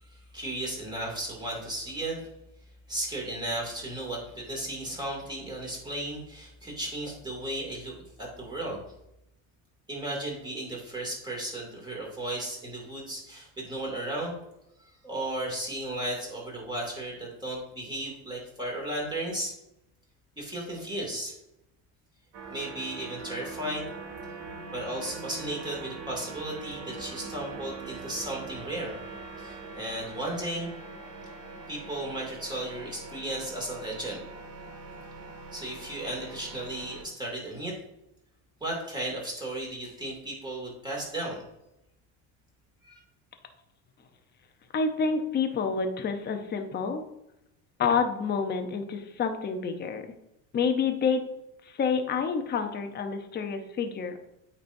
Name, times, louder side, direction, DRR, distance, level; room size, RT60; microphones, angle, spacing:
voice 1, 0.1-2.3 2.9-8.8 9.9-14.4 14.8-19.5 20.4-21.3 22.5-23.8 24.7-29.0 29.4-30.7 31.7-34.2 35.5-37.8 38.6-41.4 42.8-43.0, right 1 dB, 10° right, -3 dB, 2.4 m, -35 dB
sound 1, 22.3-37.0, right 4 dB, 85° right, 2.0 m, -42 dB
voice 2, 44.7-47.0 47.8-50.0 50.5-51.3 51.7-54.2, left 5 dB, 25° left, 6 dB, 0.7 m, -28 dB
8.6 x 4.2 x 2.6 m, 0.86 s
cardioid pair, 125°, 38 cm